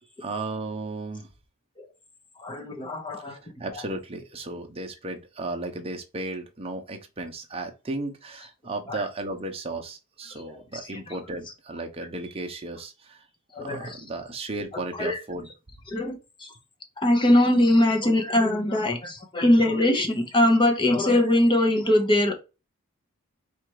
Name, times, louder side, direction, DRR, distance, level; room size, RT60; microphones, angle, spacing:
voice 1, 0.2-1.3 3.3-13.2 13.6-15.5, right 2 dB, 25° right, 0.8 m, -35 dB
voice 2, 2.4-3.3 3.7-3.8 8.9-9.0 10.5-10.6 10.9-11.2 13.5-14.0 15.0-15.2 15.9-16.5 17.0-22.3, left 1 dB, 25° left, 0.8 m, -22 dB
4.2 x 2.5 x 4.6 m
head